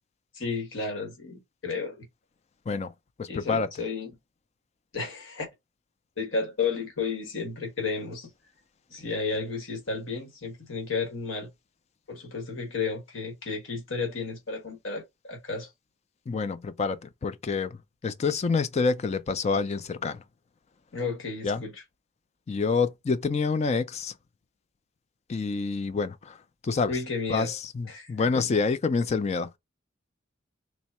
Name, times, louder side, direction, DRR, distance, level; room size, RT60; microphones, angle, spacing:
voice 1, 0.3-2.1 3.3-4.2 4.9-5.5 6.2-8.3 8.9-11.5 12.1-15.7 20.9-21.8 26.9-27.5 27.9-28.6, left 4 dB, 75° left, 1.2 m, -32 dB
voice 2, 3.2-3.7 16.3-17.8 18.0-20.2 21.4-21.6 22.5-24.1 25.3-26.4 26.6-26.9 27.3-29.6, left 4 dB, 35° left, 0.3 m, -27 dB
3.5 x 2.0 x 4.2 m
head